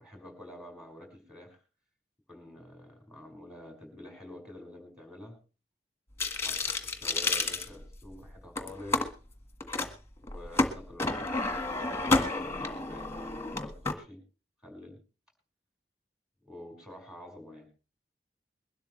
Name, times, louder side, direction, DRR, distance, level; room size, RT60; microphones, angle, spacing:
voice 1, 0.0-1.6 2.3-5.4 6.3-9.1 10.2-13.4 13.6-14.2 14.6-15.0 16.4-17.7, left 1 dB, 5° right, 2 dB, 5.6 m, -48 dB
sound 1, 6.2-8.2 8.6-9.1 9.6-9.9 10.2-13.9, left 3 dB, 15° left, 1.6 m, -30 dB
22.0 x 12.5 x 3.2 m, 0.34 s
head